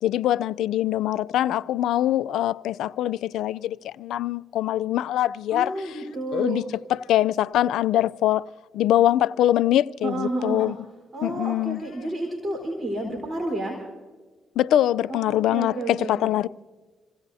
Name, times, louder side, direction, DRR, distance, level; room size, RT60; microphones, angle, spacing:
voice 1, 0.0-6.0 6.3-6.6 6.9-8.4 8.7-10.8 11.2-11.8 14.6-16.5, left 13 dB, 80° left, 0.4 m, -23 dB
voice 2, 5.5-6.6 10.0-10.7 11.1-13.8 15.1-16.3, right 2 dB, 30° right, 3.9 m, -30 dB
28.0 x 17.0 x 2.7 m
cardioid pair, 90°, 0 cm